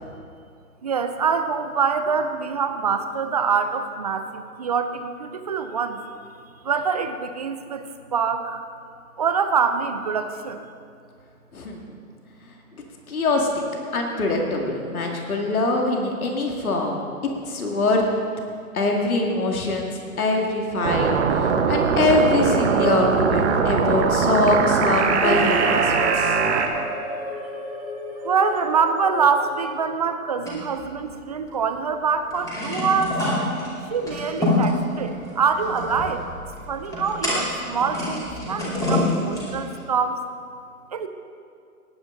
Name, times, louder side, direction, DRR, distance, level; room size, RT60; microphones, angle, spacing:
voice 1, 0.8-6.0 6.6-8.6 9.2-10.6 28.2-33.2 33.9-36.2 36.7-40.2 40.9-41.1, right 6 dB, 30° right, 8 dB, 0.5 m, -25 dB
voice 2, 13.1-13.6 13.9-17.0 17.5-18.0 18.7-21.1 21.4-26.4, left 2 dB, 70° left, 1 dB, 2.2 m, -23 dB
sound 1, 20.8-26.7, right 6 dB, 50° right, 1.2 m, -21 dB
sound 2, 25.2-30.0, right 1 dB, 10° right, 2.1 m, -30 dB
sound 3, 30.4-31.6 31.9-32.0 32.2-39.8, left 2 dB, 5° left, 2.7 m, -27 dB
18.0 x 9.4 x 3.9 m, 2.3 s
hypercardioid pair, 135°, 44 cm